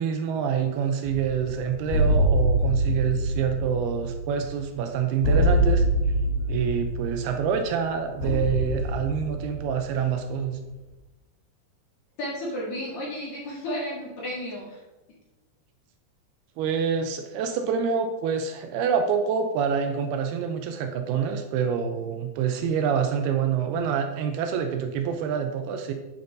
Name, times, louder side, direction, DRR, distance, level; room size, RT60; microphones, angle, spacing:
voice 1, 0.0-5.8 6.5-10.6 16.6-25.9, right 7 dB, 80° right, 6 dB, 2.5 m, -26 dB
sound 1, 1.0-10.5, right 1 dB, 80° left, 4.3 m, -25 dB
voice 2, 12.2-14.8, equal, 50° left, -5 dB, 2.8 m, -33 dB
8.9 x 6.7 x 3.9 m, 1.1 s
omnidirectional pair, 4.7 m